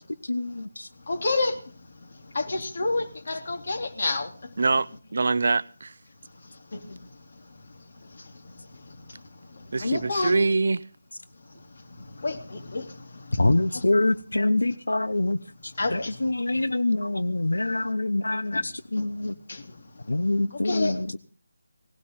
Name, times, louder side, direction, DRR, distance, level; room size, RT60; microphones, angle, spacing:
voice 1, 0.2-0.9 13.4-19.3 20.1-21.2, left 2 dB, 70° left, 1.0 m, -25 dB
voice 2, 1.1-1.6 2.3-4.3 6.7-6.8 9.8-10.4 12.2-12.9 13.7-13.8 15.8-16.1 18.5-18.6 19.5-19.6 20.6-20.9, left 3 dB, 45° left, 3.2 m, -28 dB
voice 3, 4.6-5.9 9.7-10.8, right 3 dB, 50° right, 0.7 m, -24 dB
19.0 x 16.5 x 3.8 m
figure-of-eight pair, 155°, 0 cm